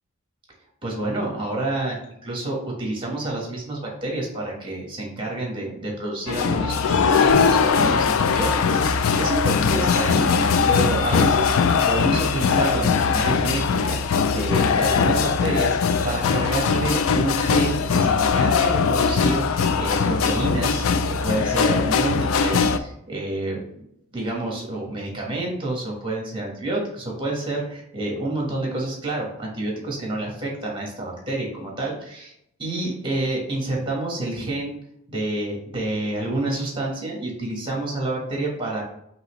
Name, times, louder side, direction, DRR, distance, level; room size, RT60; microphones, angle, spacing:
voice 1, 0.8-11.5 11.8-15.8 16.0-23.8 24.1-32.3 32.6-34.7 35.1-38.8, right 2 dB, 20° right, -2 dB, 1.3 m, -28 dB
sound 1, 6.3-22.8, left 5 dB, 65° left, 0.3 m, -20 dB
5.4 x 3.0 x 3.1 m, 0.75 s
head